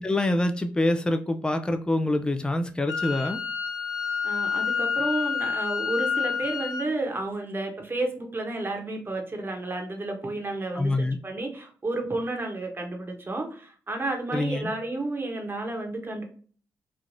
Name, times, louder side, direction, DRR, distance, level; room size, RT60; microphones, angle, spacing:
voice 1, 0.0-3.4 10.7-11.2 14.3-14.7, left 1 dB, 10° left, 8 dB, 0.4 m, -25 dB
Wind instrument woodwind instrument, 2.9-6.9, left 6 dB, 55° left, 0.8 m, -28 dB
voice 2, 4.2-11.0 11.2-16.2, right 2 dB, 30° right, 2 dB, 1.0 m, -31 dB
3.2 x 2.4 x 2.6 m, 0.43 s
hypercardioid pair, 45°, 7 cm